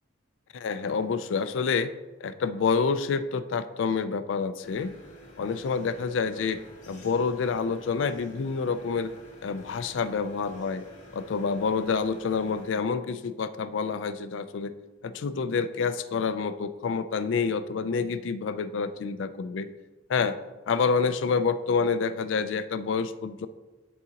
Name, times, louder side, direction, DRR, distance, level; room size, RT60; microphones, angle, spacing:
voice 1, 0.5-1.9 2.2-4.9 5.4-6.6 6.9-9.1 9.4-10.8 11.1-14.7 15.0-19.7 20.1-20.4 20.7-23.5, left 5 dB, 65° left, 12 dB, 0.4 m, -28 dB
sound 1, 4.6-12.7, left 1 dB, 40° left, 1.6 m, -50 dB
10.5 x 3.9 x 2.8 m, 1.2 s
head